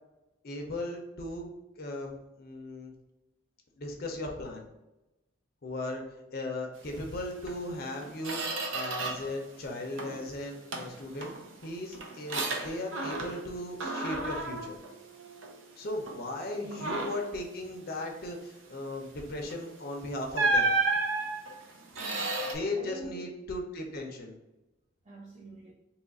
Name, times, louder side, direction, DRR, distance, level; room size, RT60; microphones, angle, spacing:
voice 1, 0.4-2.9 3.8-4.6 5.6-6.0 6.3-8.4 8.7-11.3 11.6-14.8 15.8-20.7 22.5-24.4, left 2 dB, 50° left, 2 dB, 0.5 m, -37 dB
Squeak, 7.4-7.6 7.9-9.4 9.7-10.3 10.7-13.5 13.8-15.6 16.1-16.3 16.7-17.3 19.4-19.6 20.3-22.5, right 2 dB, 85° right, 0.6 m, -32 dB
voice 2, 16.5-16.9 22.0-23.3 25.1-25.7, right 2 dB, 35° right, -5 dB, 0.5 m, -45 dB
2.9 x 2.4 x 3.9 m, 0.98 s
head